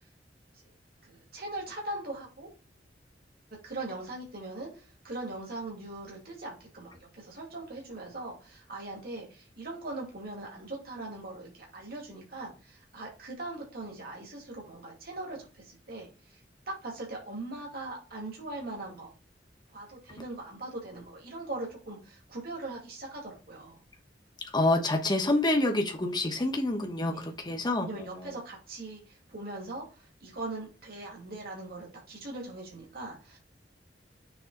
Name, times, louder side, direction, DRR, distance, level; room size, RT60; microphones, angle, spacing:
voice 1, 1.0-2.5 3.6-16.4 16.7-19.1 19.7-23.8 27.1-27.3 27.8-33.4, right 2 dB, 55° right, -1 dB, 2.1 m, -40 dB
voice 2, 24.5-28.4, left 2 dB, 25° left, 3 dB, 1.2 m, -27 dB
7.0 x 3.5 x 3.9 m, 0.35 s
head